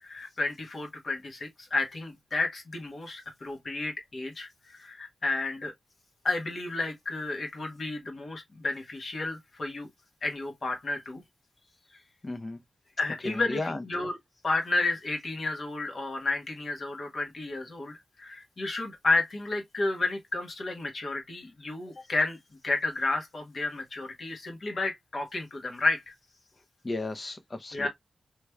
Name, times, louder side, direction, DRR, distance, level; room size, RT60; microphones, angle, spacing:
voice 1, 0.0-5.7 6.2-9.9 10.2-11.2 13.0-14.2 14.4-17.9 18.2-22.4 22.6-26.1 27.7-27.9, left 3 dB, 55° left, 1.2 m, -31 dB
voice 2, 12.2-12.6 13.2-13.8 26.8-27.9, left 2 dB, 35° left, 0.6 m, -34 dB
3.3 x 2.9 x 2.3 m
wide cardioid pair, 80°, 0 cm